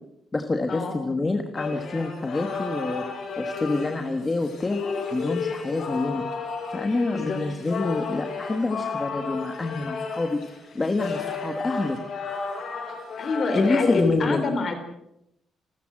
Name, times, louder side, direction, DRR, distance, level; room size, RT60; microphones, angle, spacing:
voice 1, 0.3-3.1 3.4-4.8 5.1-6.2 6.7-12.0 13.5-14.4, left 2 dB, 15° left, 6 dB, 1.3 m, -27 dB
sound 1, 1.5-14.0, left 4 dB, 50° left, 6.2 m, -32 dB
voice 2, 7.1-7.4 13.2-14.7, left 4 dB, 35° left, 8 dB, 3.7 m, -26 dB
29.0 x 14.0 x 7.6 m, 0.83 s
cardioid pair, 180°, 0 cm